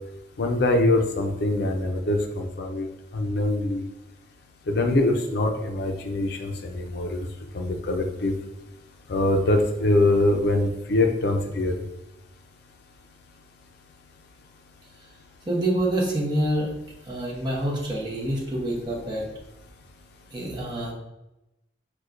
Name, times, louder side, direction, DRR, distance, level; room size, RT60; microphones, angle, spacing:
voice 1, 0.4-2.9 3.1-3.9 4.7-7.2 7.5-8.3 9.1-11.8, left 2 dB, 65° left, 3 dB, 0.5 m, -23 dB
voice 2, 15.5-16.7 17.1-19.2 20.3-20.9, right 1 dB, 25° right, -3 dB, 0.9 m, -26 dB
6.3 x 2.3 x 2.5 m, 0.95 s
head